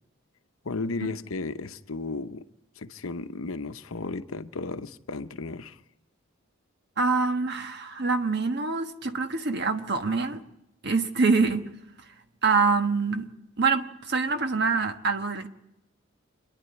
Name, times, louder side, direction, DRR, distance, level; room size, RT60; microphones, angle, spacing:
voice 1, 0.6-2.4 2.8-5.8, left 3 dB, 85° left, 0.9 m, -34 dB
voice 2, 7.0-10.4 10.8-11.6 12.4-13.3 13.6-15.5, right 4 dB, 55° right, 1.4 m, -25 dB
27.0 x 10.5 x 9.6 m
head